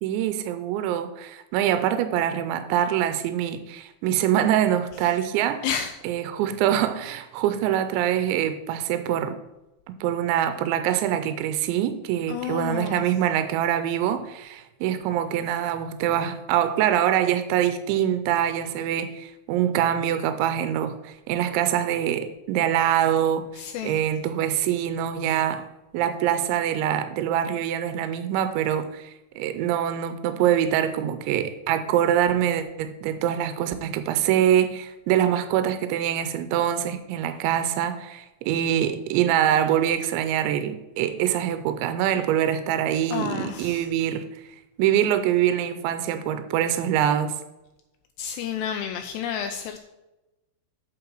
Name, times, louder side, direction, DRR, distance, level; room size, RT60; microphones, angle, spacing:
voice 1, 0.0-5.7 6.0-9.4 10.0-25.7 25.9-44.3 44.8-47.3, right 10 dB, 85° right, 2.9 m, -24 dB
voice 2, 5.6-5.9 12.3-13.0 23.6-24.0 43.1-43.9 48.2-49.8, left 8 dB, 85° left, 2.6 m, -30 dB
8.0 x 7.6 x 4.6 m
omnidirectional pair, 5.2 m